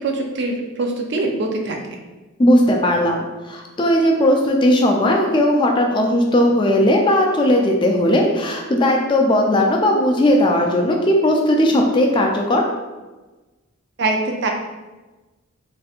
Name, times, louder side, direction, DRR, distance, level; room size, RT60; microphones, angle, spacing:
voice 1, 0.0-1.8 14.0-14.5, right 2 dB, 50° right, 1 dB, 0.4 m, -23 dB
voice 2, 2.4-12.6, left 1 dB, 20° left, 1 dB, 0.3 m, -17 dB
3.3 x 2.9 x 2.4 m, 1.2 s
head